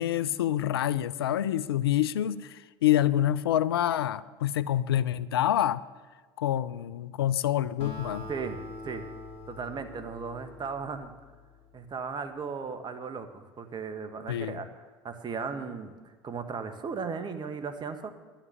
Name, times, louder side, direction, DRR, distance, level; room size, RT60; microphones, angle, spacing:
voice 1, 0.0-5.8 6.4-8.3 14.3-14.6, left 12 dB, 85° left, 17 dB, 0.4 m, -27 dB
Acoustic guitar, 7.8-11.4, left 2 dB, 50° left, 2.8 m, -43 dB
voice 2, 8.3-8.6 8.8-9.0 9.5-11.1 11.7-15.9 16.2-18.1, right 5 dB, 35° right, 9 dB, 1.5 m, -36 dB
11.0 x 7.3 x 9.6 m, 1.4 s
hypercardioid pair, 70°, 12 cm